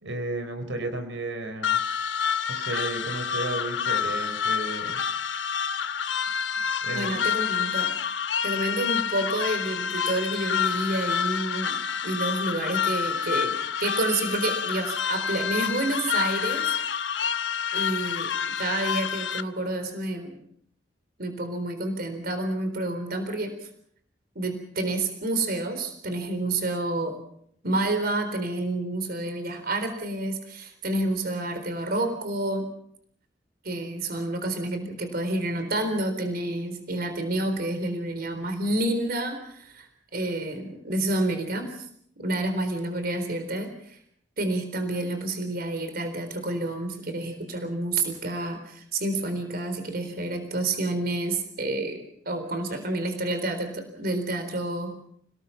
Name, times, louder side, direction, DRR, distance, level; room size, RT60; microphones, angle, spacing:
voice 1, 0.0-1.8 2.5-5.0 6.8-7.2, right 2 dB, 85° right, 7 dB, 4.1 m, -33 dB
sound 1, 1.6-19.4, left 7 dB, 85° left, 1.1 m, -28 dB
voice 2, 6.9-7.9 8.4-11.8 12.0-16.7 17.7-20.4 21.2-23.5 24.4-27.2 27.6-32.7 33.6-41.9 42.2-44.0 44.4-55.0, right 2 dB, 55° right, 7 dB, 4.0 m, -29 dB
29.0 x 18.5 x 5.9 m, 0.68 s
head